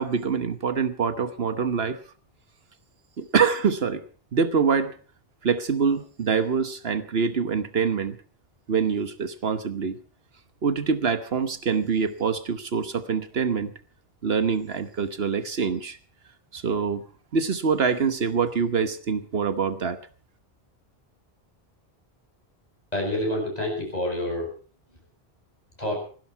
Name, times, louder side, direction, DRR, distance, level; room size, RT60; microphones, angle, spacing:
voice 1, 0.0-2.0 3.2-4.0 4.3-4.9 5.4-8.2 8.7-10.0 10.6-13.7 14.2-16.0 16.5-17.1 17.3-20.0, right 6 dB, 70° right, 11 dB, 1.3 m, -25 dB
voice 2, 22.9-24.5 25.8-25.9, left 1 dB, 40° left, -1 dB, 8.0 m, -27 dB
19.0 x 16.0 x 4.6 m, 0.41 s
omnidirectional pair, 1.1 m